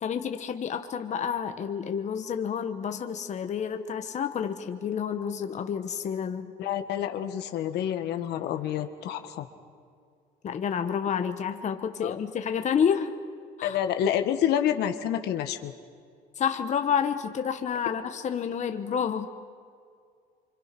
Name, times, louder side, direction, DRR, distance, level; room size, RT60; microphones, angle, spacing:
voice 1, 0.0-6.5 10.4-13.1 13.6-13.8 16.4-19.3, left 7 dB, 45° left, 7 dB, 1.3 m, -29 dB
voice 2, 6.6-9.5 12.0-12.2 13.6-15.7, left 10 dB, 75° left, 7 dB, 1.6 m, -28 dB
26.5 x 25.5 x 6.0 m, 2.2 s
cardioid pair, 110°, 17 cm